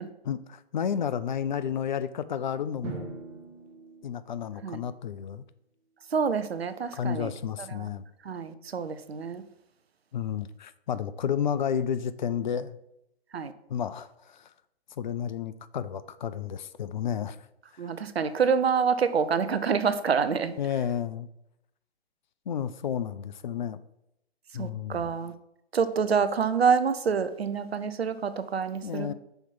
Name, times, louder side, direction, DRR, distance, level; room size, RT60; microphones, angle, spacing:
voice 1, 0.3-3.1 4.0-5.4 6.9-8.1 10.1-12.8 13.7-14.5 15.0-17.4 17.8-17.9 20.6-21.3 22.5-23.8 24.5-25.1 28.8-29.1, left 8 dB, 50° left, 14 dB, 0.5 m, -31 dB
Drum, 2.8-4.8, right 4 dB, 35° right, 1.9 m, -41 dB
voice 2, 6.1-7.3 7.6-7.9 8.2-9.4 13.3-13.5 17.8-20.6 24.6-25.3 25.7-29.1, right 6 dB, 75° right, 11 dB, 0.7 m, -27 dB
5.7 x 4.4 x 5.5 m, 0.81 s
figure-of-eight pair, 130°, 31 cm